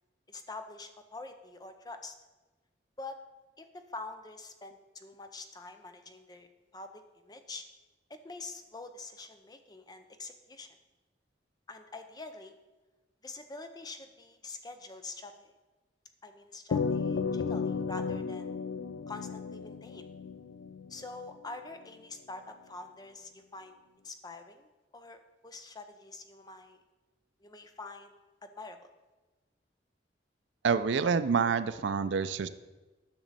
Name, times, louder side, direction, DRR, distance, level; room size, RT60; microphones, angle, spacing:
voice 1, 0.3-2.1 3.0-3.2 3.6-7.7 8.1-10.7 11.7-12.5 13.2-15.5 16.2-18.5 19.1-20.1 20.9-23.8 24.0-26.8 27.4-28.1 28.4-28.8, left 3 dB, 20° left, 7 dB, 0.6 m, -46 dB
sound 1, 16.7-21.3, left 5 dB, 70° left, 0.4 m, -34 dB
voice 2, 30.6-32.5, right 5 dB, 70° right, 11 dB, 0.4 m, -27 dB
10.5 x 6.0 x 4.1 m, 1.2 s
head